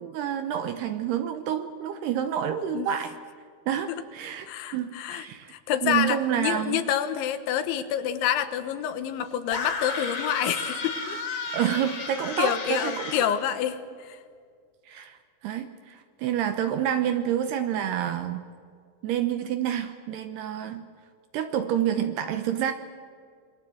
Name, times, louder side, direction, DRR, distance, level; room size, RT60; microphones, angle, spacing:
voice 1, 0.0-3.2 3.7-5.5 5.8-6.8 11.5-13.1 14.9-15.2 15.4-18.5 19.0-20.8 21.3-22.7, right 10 dB, 75° right, 8 dB, 2.6 m, -28 dB
voice 2, 4.5-5.3 5.5-11.2 12.4-14.2, left 10 dB, 75° left, 10 dB, 3.5 m, -28 dB
sound 1, 9.5-13.4, left 4 dB, 35° left, 3.6 m, -33 dB
27.0 x 22.0 x 7.8 m, 2.2 s
omnidirectional pair, 5.5 m